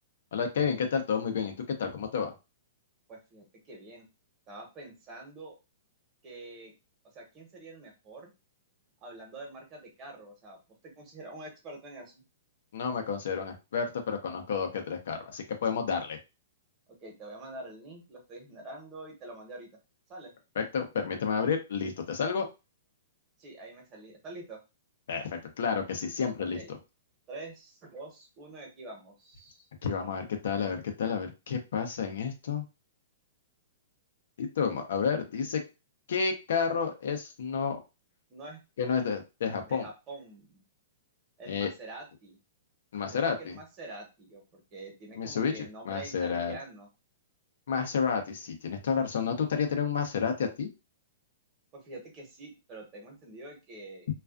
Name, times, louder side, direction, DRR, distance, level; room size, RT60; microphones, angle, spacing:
voice 1, 0.3-2.3 12.7-16.2 20.6-22.5 25.1-26.8 29.8-32.7 34.4-35.6 36.1-37.8 38.8-39.9 41.5-41.7 42.9-43.6 45.1-46.5 47.7-50.7, left 6 dB, 75° left, 6 dB, 0.6 m, -30 dB
voice 2, 3.1-4.1 4.5-5.5 6.2-6.7 7.1-8.3 9.0-12.2 17.0-19.7 20.1-20.3 23.4-24.6 26.5-26.7 27.3-29.7 38.3-38.6 39.6-40.6 41.4-42.4 43.0-46.9 51.7-54.1, right 2 dB, 30° right, 1 dB, 1.0 m, -46 dB
2.3 x 2.3 x 2.3 m, 0.27 s
hypercardioid pair, 140°, 0 cm